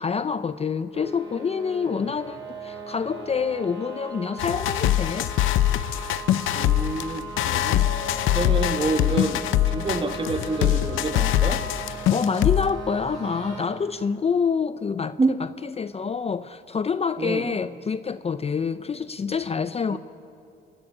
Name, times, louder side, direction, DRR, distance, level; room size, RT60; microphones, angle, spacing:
voice 1, 0.0-5.3 12.1-20.0, left 5 dB, 30° left, 13 dB, 0.6 m, -27 dB
sound 1, 0.9-13.7, right 4 dB, 75° right, 5.4 m, -38 dB
sound 2, 4.4-12.7, left 13 dB, 90° left, 0.7 m, -23 dB
voice 2, 6.5-7.8 8.3-11.6 15.2-15.3 17.2-17.5 19.9-20.0, right 3 dB, 25° right, 7 dB, 1.9 m, -27 dB
sound 3, 7.5-9.5 9.9-12.6 13.1-13.6, left 4 dB, 55° left, 3.3 m, -46 dB
27.5 x 11.5 x 10.0 m, 2.6 s
cardioid pair, 90°, 20 cm